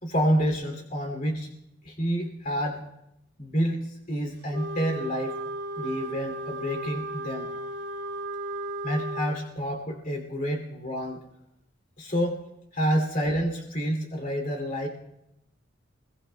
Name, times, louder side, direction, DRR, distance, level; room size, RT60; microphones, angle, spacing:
voice 1, 0.0-1.5 1.8-2.8 3.4-5.4 5.8-7.5 8.8-11.2 12.0-12.4 12.7-14.9, equal, 45° left, 2 dB, 2.6 m, -28 dB
Wind instrument woodwind instrument, 4.5-9.4, right 1 dB, 75° right, 4.6 m, -35 dB
26.0 x 22.5 x 2.2 m, 0.83 s
head